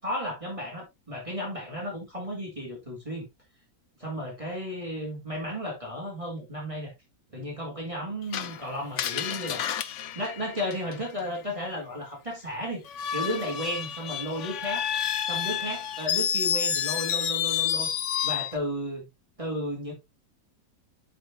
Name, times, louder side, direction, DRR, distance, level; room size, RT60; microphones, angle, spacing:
voice 1, 0.0-3.3 4.0-6.9 7.3-9.7 10.1-12.8 13.1-14.9 15.2-17.9 18.2-19.0 19.4-19.9, equal, 20° right, 3.0 m, -33 dB
Screech, 8.3-11.2 12.9-18.6, left 9 dB, 60° left, 0.8 m, -30 dB
8.7 x 6.5 x 2.7 m
omnidirectional pair, 1.8 m